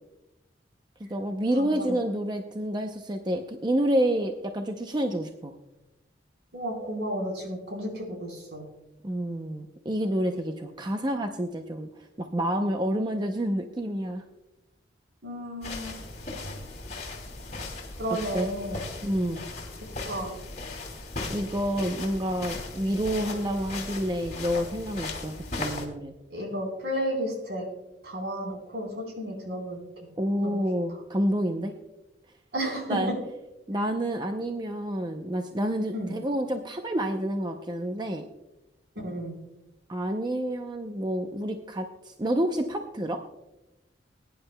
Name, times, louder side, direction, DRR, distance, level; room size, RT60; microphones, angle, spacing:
voice 1, 1.0-5.5 9.0-11.9 12.2-14.2 18.3-18.5 19.0-19.4 21.3-26.1 30.2-31.7 32.9-33.1 33.7-38.3 39.9-43.2, equal, 25° right, 5 dB, 0.6 m, -28 dB
voice 2, 1.6-2.0 6.5-8.6 15.2-16.0 18.0-18.8 20.1-20.4 26.3-27.7 28.0-29.8 30.4-30.6 32.5-33.0 35.9-36.1 39.0-39.4, equal, 70° right, 1 dB, 3.9 m, -32 dB
sound 1, 15.6-25.9, left 3 dB, 45° left, 2.5 m, -37 dB
21.0 x 10.0 x 2.2 m, 0.96 s
head